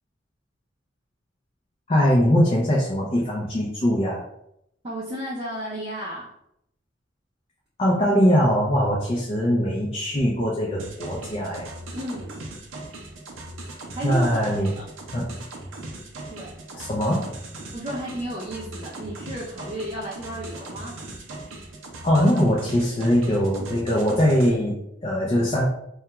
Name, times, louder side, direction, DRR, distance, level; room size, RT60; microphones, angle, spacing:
voice 1, 1.9-4.2 7.8-11.7 14.0-14.7 15.1-15.3 16.7-17.3 22.0-25.7, equal, 30° left, -4 dB, 0.4 m, -21 dB
voice 2, 4.8-6.3 11.9-12.4 13.9-14.4 14.8-14.9 16.3-16.6 17.7-21.0, right 1 dB, 25° right, -7 dB, 0.5 m, -33 dB
sound 1, 10.8-24.5, right 2 dB, 85° right, 0.5 m, -39 dB
2.3 x 2.2 x 2.9 m, 0.78 s
head